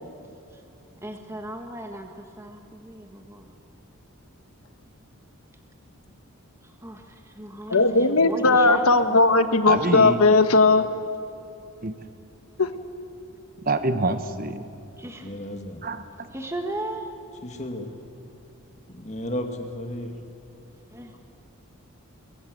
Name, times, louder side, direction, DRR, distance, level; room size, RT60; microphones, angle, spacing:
voice 1, 1.0-3.6 6.6-9.2 15.0-15.3 16.3-17.1 20.9-21.1, right 1 dB, 10° right, 3 dB, 1.5 m, -36 dB
voice 2, 7.7-10.8 12.6-12.7, left 3 dB, 75° left, 9 dB, 1.3 m, -18 dB
voice 3, 9.7-10.2 11.8-12.0 13.6-14.6 15.8-16.3, right 2 dB, 40° right, 9 dB, 1.1 m, -26 dB
voice 4, 15.2-15.8 17.4-17.9 18.9-20.1, left 1 dB, 30° left, 4 dB, 2.2 m, -33 dB
24.0 x 22.5 x 8.0 m, 2.7 s
head